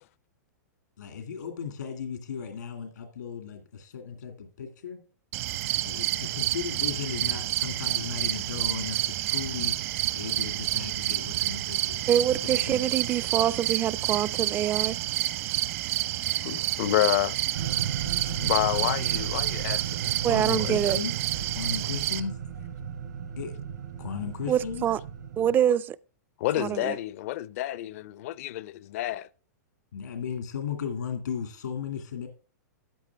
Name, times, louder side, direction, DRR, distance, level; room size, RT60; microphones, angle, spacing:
voice 1, 1.0-5.0 5.8-9.8 10.2-12.1 12.4-13.0 18.0-18.5 18.8-18.9 20.3-21.1 21.5-22.4 23.4-23.5 24.0-24.8 29.9-32.3, left 7 dB, 90° left, 2.2 m, -36 dB
sound 1, 5.3-22.2, right 15 dB, 50° right, 0.9 m, -29 dB
voice 2, 12.1-15.0 20.2-21.0 24.5-25.0 25.4-26.0 26.6-27.0, right 10 dB, 20° right, 0.4 m, -25 dB
voice 3, 16.4-17.4 18.4-21.0 26.4-29.3, left 15 dB, 55° left, 0.5 m, -29 dB
sound 2, 17.5-25.5, right 8 dB, 85° right, 3.6 m, -35 dB
13.0 x 8.9 x 3.4 m
hypercardioid pair, 135°, 9 cm